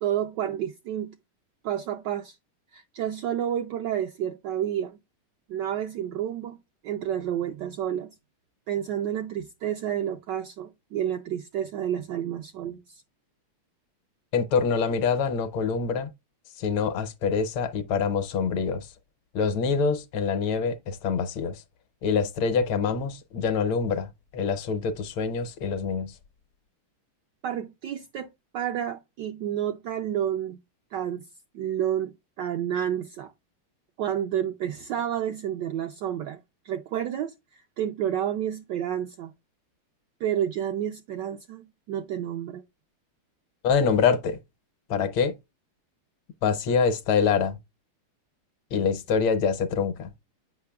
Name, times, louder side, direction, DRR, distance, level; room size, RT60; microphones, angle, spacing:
voice 1, 0.0-1.2 1.6-2.4 2.7-5.0 5.5-6.6 6.8-8.2 8.7-13.0 27.4-30.6 30.9-31.3 31.5-33.3 34.0-39.3 40.2-42.6, right 10 dB, 80° right, 1.0 m, -30 dB
voice 2, 14.3-16.1 16.6-18.9 19.3-21.6 22.0-26.1 43.6-44.4 44.9-45.3 46.4-47.6 48.7-50.1, left 5 dB, 75° left, 1.5 m, -25 dB
8.5 x 5.6 x 2.2 m
omnidirectional pair, 2.4 m